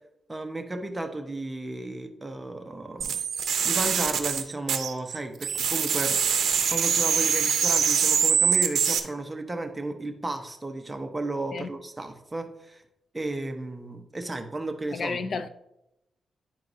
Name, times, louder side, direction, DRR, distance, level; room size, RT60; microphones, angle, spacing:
voice 1, 0.3-3.2 3.6-6.2 6.7-12.8 13.1-15.2, right 2 dB, 15° right, 0.8 m, -33 dB
sound 1, 3.0-5.2 5.4-9.0, right 7 dB, 80° right, 0.6 m, -24 dB
voice 2, 14.9-15.5, left 4 dB, 60° left, 0.4 m, -31 dB
9.9 x 4.6 x 2.6 m
cardioid pair, 105°, 0 cm